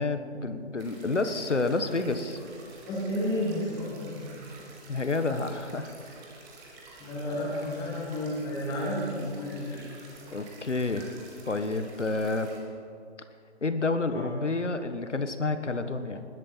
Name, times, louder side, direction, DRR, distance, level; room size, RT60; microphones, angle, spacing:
voice 1, 0.0-2.4 4.9-5.9 10.3-11.0 11.5-12.5 13.6-16.3, left 3 dB, 90° left, 9 dB, 1.4 m, -29 dB
sound 1, 0.8-12.6, right 2 dB, 10° right, 1.1 m, -50 dB
voice 2, 2.9-4.4 7.0-9.9 14.1-14.2, left 1 dB, 10° left, -5 dB, 2.5 m, -32 dB
20.5 x 11.0 x 4.4 m, 2.5 s
figure-of-eight pair, 150°, 35 cm